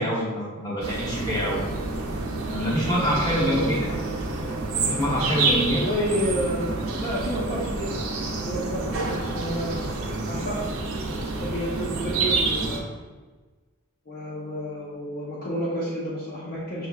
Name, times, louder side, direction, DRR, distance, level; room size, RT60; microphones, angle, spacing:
voice 1, 0.0-1.6 2.5-3.7 4.7-5.8, equal, 15° left, -7 dB, 1.0 m, -25 dB
sound 1, 0.8-12.8, right 3 dB, 70° right, 0.6 m, -28 dB
voice 2, 3.3-4.0 5.7-9.9 10.3-10.6 11.4-12.9 14.1-16.9, equal, 40° left, -6 dB, 0.6 m, -30 dB
5.5 x 3.2 x 2.3 m, 1.3 s
head